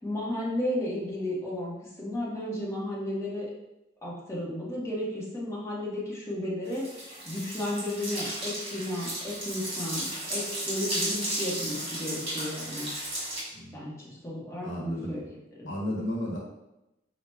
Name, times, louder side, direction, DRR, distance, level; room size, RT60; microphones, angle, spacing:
voice 1, 0.0-3.5 4.0-12.9 13.7-15.7, left 1 dB, 15° left, -7 dB, 0.9 m, -34 dB
sound 1, 6.7-13.4, right 1 dB, 30° right, 1.5 m, -34 dB
voice 2, 13.5-13.9 14.6-15.2 15.7-16.4, equal, 75° left, -3 dB, 0.9 m, -33 dB
4.6 x 2.1 x 3.3 m, 0.92 s
head